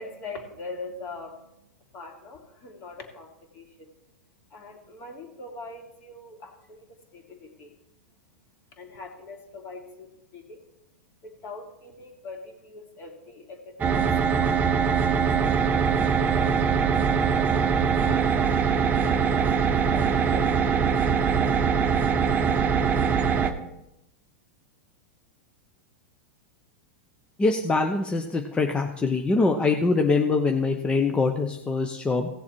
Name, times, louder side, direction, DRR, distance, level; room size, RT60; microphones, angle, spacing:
voice 1, 0.0-1.6 1.9-3.9 4.5-7.8 8.2-8.3 8.7-20.8, left 3 dB, 40° left, 1 dB, 2.9 m, -43 dB
sound 1, 13.8-23.5, right 6 dB, 25° right, 1.0 m, -22 dB
voice 2, 27.4-32.3, left 3 dB, 15° left, 4 dB, 0.8 m, -23 dB
17.0 x 7.1 x 4.5 m, 0.86 s
hypercardioid pair, 130°, 7 cm